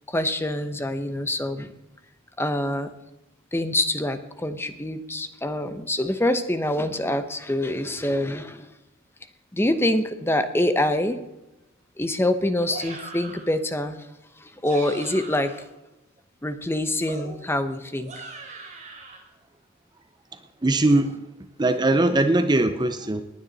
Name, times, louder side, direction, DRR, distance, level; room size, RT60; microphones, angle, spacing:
voice 1, 0.1-1.7 2.4-2.9 3.5-8.7 9.5-11.2 12.0-14.0 14.4-15.6 16.4-18.1, left 1 dB, 10° left, 10 dB, 0.8 m, -25 dB
sound 1, 12.7-13.5 14.5-15.7 17.1-19.2, right 3 dB, 35° right, 3.1 m, -40 dB
voice 2, 20.6-21.2 21.6-23.2, right 2 dB, 20° right, 10 dB, 0.6 m, -20 dB
19.5 x 9.5 x 4.0 m, 0.98 s
head